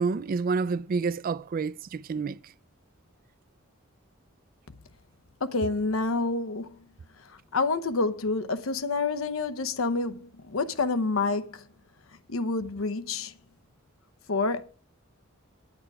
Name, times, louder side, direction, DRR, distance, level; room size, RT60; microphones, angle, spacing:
voice 1, 0.0-2.4, right 4 dB, 45° right, 0.4 m, -28 dB
voice 2, 5.4-6.8 7.5-11.6 12.3-13.3 14.3-14.6, left 3 dB, 90° left, 0.8 m, -28 dB
9.0 x 8.8 x 4.8 m
head